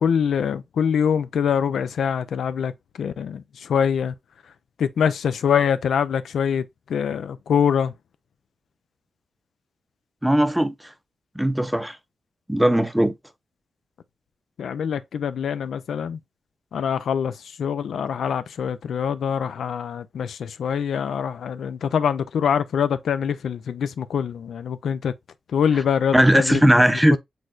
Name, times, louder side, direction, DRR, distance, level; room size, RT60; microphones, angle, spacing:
voice 1, 0.0-2.7 3.0-4.1 4.8-6.6 6.9-7.9 14.6-16.2 16.7-25.1 25.5-26.6 27.1-27.2, left 7 dB, 85° left, 0.4 m, -24 dB
voice 2, 10.2-10.7 11.4-12.0 12.5-13.1 26.1-27.2, right 1 dB, 5° right, 0.6 m, -18 dB
6.2 x 3.3 x 2.4 m
cardioid pair, 75°, 0 cm